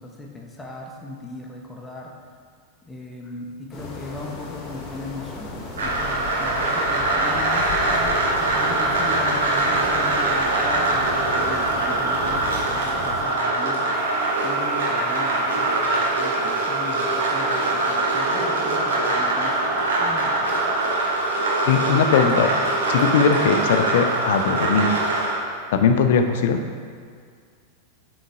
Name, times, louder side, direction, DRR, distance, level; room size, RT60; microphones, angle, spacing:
voice 1, 0.0-2.1 2.8-8.2 8.5-14.1 14.4-20.6, left 2 dB, 10° left, -1 dB, 1.0 m, -37 dB
sound 1, 3.7-13.3, left 3 dB, 25° left, 1.4 m, -34 dB
sound 2, 5.8-25.4, right 2 dB, 60° right, 1.2 m, -23 dB
sound 3, 13.9-19.4, right 3 dB, 40° right, 1.1 m, -40 dB
voice 2, 21.7-22.5 22.9-24.9 25.7-26.6, left 6 dB, 55° left, 6 dB, 0.6 m, -19 dB
8.1 x 4.0 x 4.8 m, 2.1 s
figure-of-eight pair, 90°, 0 cm